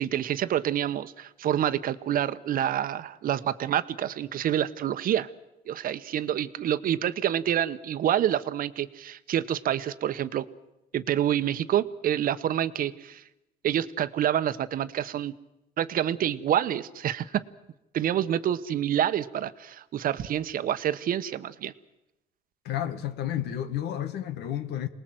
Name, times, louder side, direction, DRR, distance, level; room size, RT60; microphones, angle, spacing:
voice 1, 0.0-5.3 5.7-10.5 10.9-13.2 13.6-15.3 15.8-17.4 17.9-21.7, right 10 dB, 55° right, 1.1 m, -27 dB
voice 2, 22.7-24.9, left 11 dB, 80° left, 1.6 m, -31 dB
27.5 x 19.5 x 7.8 m
cardioid pair, 110°, 17 cm